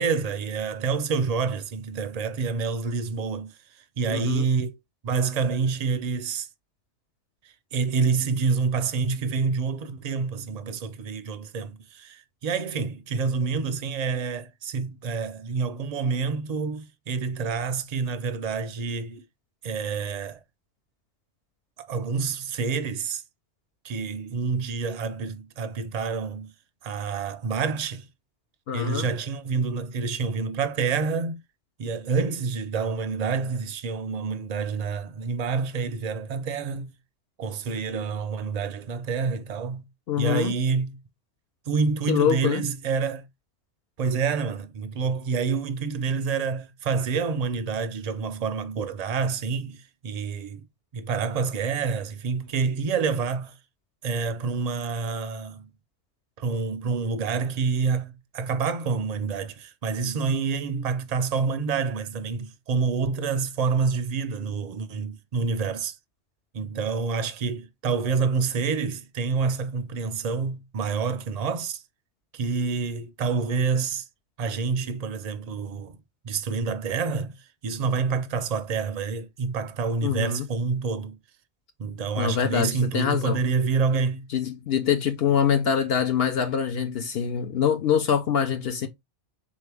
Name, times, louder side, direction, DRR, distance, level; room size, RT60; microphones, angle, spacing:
voice 1, 0.0-3.5 4.0-4.8 5.0-6.5 7.7-19.2 19.6-20.4 21.8-23.2 23.8-26.5 26.8-28.1 28.7-31.4 31.8-36.9 37.4-39.9 40.2-41.0 41.7-43.2 44.0-50.7 50.9-53.5 54.0-55.7 56.4-66.0 66.5-71.8 72.3-74.0 74.4-76.0 76.2-77.4 77.6-81.2 81.8-84.3, right 5 dB, 50° right, 0.5 m, -27 dB
voice 2, 4.1-4.5 28.7-29.1 40.1-40.6 42.1-42.6 80.0-80.4 82.2-83.4 84.3-88.9, left 8 dB, 60° left, 0.8 m, -24 dB
3.8 x 3.2 x 3.3 m
omnidirectional pair, 1.2 m